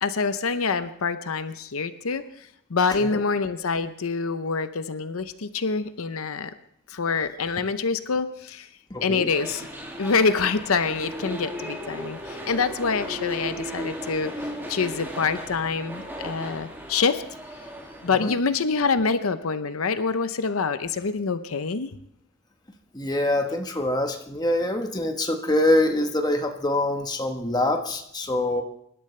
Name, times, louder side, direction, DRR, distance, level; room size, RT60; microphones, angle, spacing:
voice 1, 0.0-6.5 6.9-8.7 9.0-9.7 10.0-17.2 18.0-21.9, left 4 dB, 80° left, 11 dB, 0.7 m, -26 dB
voice 2, 8.9-9.3 18.2-18.3 22.9-28.6, left 1 dB, 20° left, 4 dB, 1.2 m, -24 dB
sound 1, 9.3-18.1, equal, 10° right, 2.3 m, -36 dB
25.0 x 12.0 x 3.3 m, 0.72 s
head